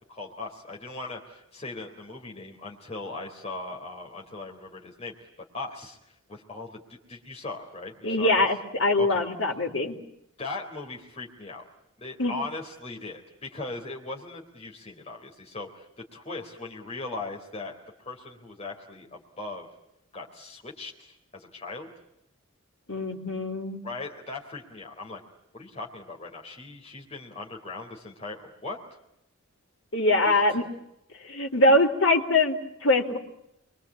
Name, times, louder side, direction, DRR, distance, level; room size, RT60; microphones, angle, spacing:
voice 1, 0.1-5.3 5.5-6.0 6.3-8.4 9.0-9.2 10.4-11.6 12.0-19.7 20.1-21.9 23.8-25.2 25.5-28.8 30.2-30.4, left 3 dB, 30° left, -1 dB, 4.0 m, -39 dB
voice 2, 8.0-10.0 12.2-12.3 22.9-23.8 29.9-30.6 31.2-33.2, left 2 dB, 60° left, 4 dB, 3.9 m, -23 dB
29.0 x 23.5 x 8.7 m, 0.82 s
head